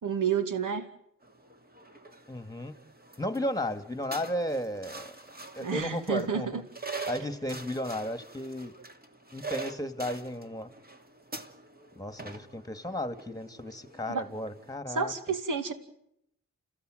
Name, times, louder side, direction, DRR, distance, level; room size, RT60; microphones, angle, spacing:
voice 1, 0.0-0.9 5.6-6.6 14.1-14.3 14.9-15.7, right 6 dB, 65° right, 8 dB, 2.5 m, -30 dB
sound 1, 1.2-14.8, right 3 dB, 25° right, 2.6 m, -44 dB
voice 2, 2.3-2.7 3.2-5.1 5.5-6.6 7.1-8.7 9.3-10.7 12.0-15.1, left 1 dB, 10° left, 10 dB, 2.2 m, -34 dB
29.5 x 16.0 x 9.2 m, 0.77 s
cardioid pair, 60°, 34 cm